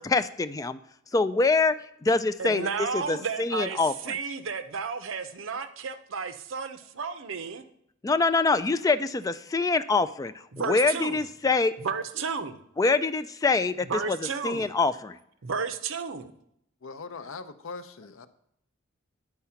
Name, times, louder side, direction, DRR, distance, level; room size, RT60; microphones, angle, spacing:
voice 1, 0.0-0.8 1.1-1.8 2.0-2.7 2.9-3.9 8.0-11.7 12.8-14.2 14.4-15.2, left 3 dB, 15° left, 11 dB, 0.3 m, -25 dB
voice 2, 2.4-7.6 10.5-11.2 11.8-12.6 13.9-14.7 15.4-16.3, right 5 dB, 75° right, 10 dB, 0.7 m, -32 dB
voice 3, 16.8-18.3, left 4 dB, 80° left, 12 dB, 0.6 m, -40 dB
9.8 x 4.7 x 5.7 m, 0.74 s
head